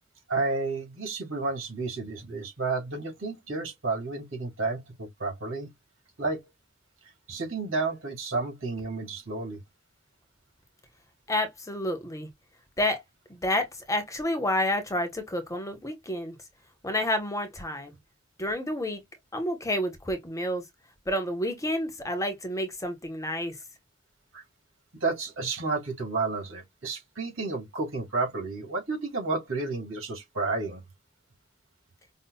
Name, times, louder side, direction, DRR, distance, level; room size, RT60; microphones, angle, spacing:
voice 1, 0.3-5.7 6.2-6.4 7.3-9.6 24.3-24.4 25.0-30.8, right 3 dB, 75° right, 2.6 m, -31 dB
voice 2, 11.3-12.3 12.8-13.0 13.3-16.4 16.8-18.0 18.4-19.0 19.3-20.6 21.1-23.6, left 1 dB, 15° left, 0.9 m, -29 dB
5.5 x 2.4 x 2.3 m
head